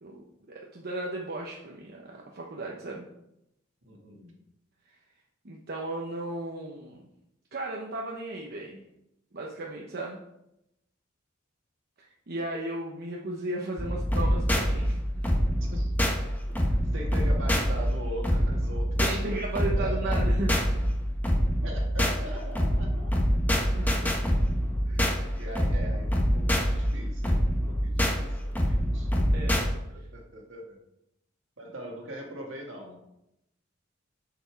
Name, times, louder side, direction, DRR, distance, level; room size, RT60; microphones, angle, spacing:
voice 1, 0.0-3.1 4.9-5.0 5.4-7.1 7.5-8.8 9.3-10.2 12.0-15.3 19.0-20.5 23.8-24.1 29.3-29.6, right 2 dB, 50° right, -1 dB, 0.9 m, -35 dB
voice 2, 3.8-4.3 15.7-15.9 16.5-19.2 19.5-20.2 21.6-23.1 24.9-27.4 27.7-29.1 29.9-30.8 31.6-33.0, right 1 dB, 70° right, 0 dB, 1.9 m, -41 dB
sound 1, 13.8-29.7, equal, 10° left, 1.1 m, -26 dB
7.0 x 6.9 x 4.7 m, 0.84 s
head